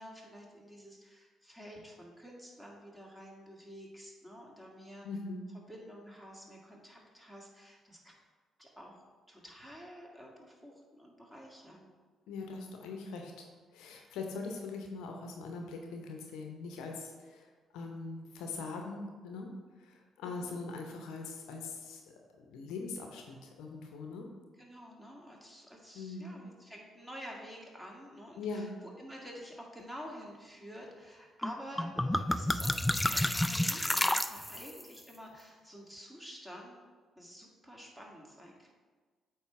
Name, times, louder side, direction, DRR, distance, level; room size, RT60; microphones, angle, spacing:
voice 1, 0.0-5.1 5.7-8.2 8.6-9.0 9.3-11.9 20.2-20.6 24.6-36.8 37.1-38.7, equal, 5° right, -2 dB, 1.8 m, -49 dB
voice 2, 5.0-5.4 12.3-13.5 13.7-22.0 22.4-24.3 25.9-26.4 28.4-28.8, left 3 dB, 70° left, 2 dB, 0.7 m, -42 dB
sound 1, 31.4-31.5 31.8-34.8, left 1 dB, 10° left, 0.3 m, -30 dB
8.3 x 3.1 x 4.6 m, 1.4 s
hypercardioid pair, 45°, 0 cm